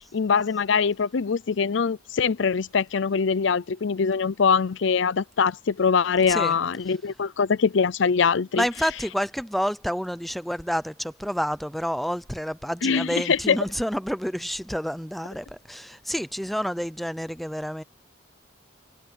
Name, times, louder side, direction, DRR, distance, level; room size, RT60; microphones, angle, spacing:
voice 1, 0.1-8.6 12.8-13.6, left 5 dB, 70° left, 0.5 m, -23 dB
voice 2, 8.5-17.8, equal, ahead, 0.6 m, -29 dB
head